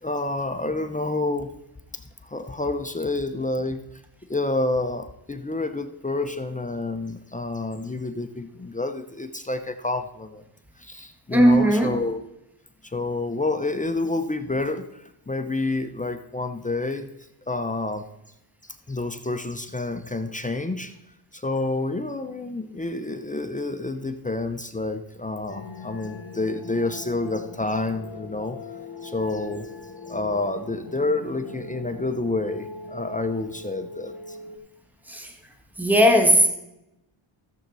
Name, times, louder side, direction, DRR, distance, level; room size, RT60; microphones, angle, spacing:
voice 1, 0.0-1.5 2.2-3.8 4.3-10.4 10.8-12.2 12.8-17.1 17.5-18.1 18.6-20.9 21.3-28.6 29.0-29.7 30.1-34.4, left 2 dB, 15° left, 8 dB, 0.8 m, -29 dB
voice 2, 11.3-12.0 35.1-35.3 35.8-36.5, equal, 5° right, 4 dB, 1.7 m, -17 dB
sound 1, 25.5-34.6, left 3 dB, 45° left, 1.6 m, -40 dB
13.5 x 7.5 x 4.1 m, 0.88 s
cardioid pair, 75°, 49 cm